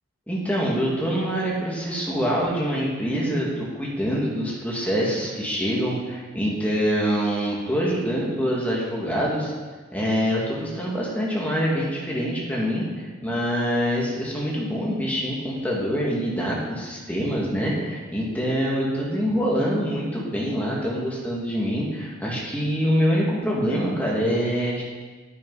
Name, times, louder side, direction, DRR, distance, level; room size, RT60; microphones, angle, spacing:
voice 1, 0.3-9.5 9.9-24.8, equal, 5° left, -5 dB, 2.2 m, -25 dB
10.0 x 9.2 x 4.2 m, 1.4 s
head